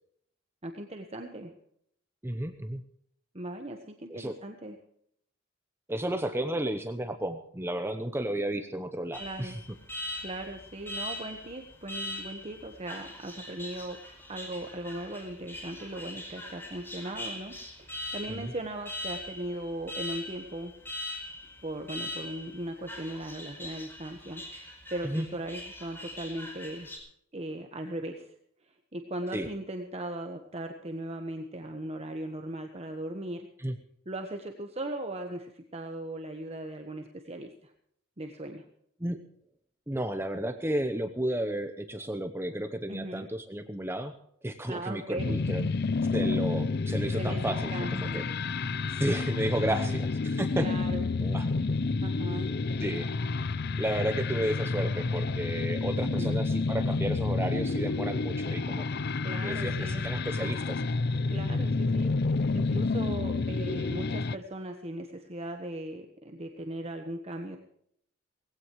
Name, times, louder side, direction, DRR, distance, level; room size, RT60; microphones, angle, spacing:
voice 1, 0.6-1.5 3.3-4.8 9.2-9.6 10.2-14.0 14.3-20.7 21.6-26.9 27.3-28.3 28.6-33.5 34.0-37.7 38.2-38.6 42.9-43.3 44.7-45.3 47.2-48.2 49.6-50.0 50.5-51.1 52.0-52.5 56.1-56.4 59.2-60.1 61.3-67.6, right 1 dB, 35° right, 4 dB, 1.3 m, -38 dB
voice 2, 2.2-2.8 4.1-4.3 5.9-9.6 18.3-18.5 25.0-25.3 29.3-29.5 33.6-33.7 39.0-39.2 39.9-44.1 44.4-45.7 46.1-48.2 48.9-50.7 51.2-51.5 52.8-53.1 53.8-58.9 59.4-60.8, right 1 dB, 10° right, 7 dB, 0.9 m, -32 dB
Alarm, 9.1-27.0, left 1 dB, 10° left, 4.5 m, -41 dB
sound 1, 45.2-64.4, left 3 dB, 55° left, 0.6 m, -29 dB
19.5 x 16.5 x 3.2 m, 0.70 s
head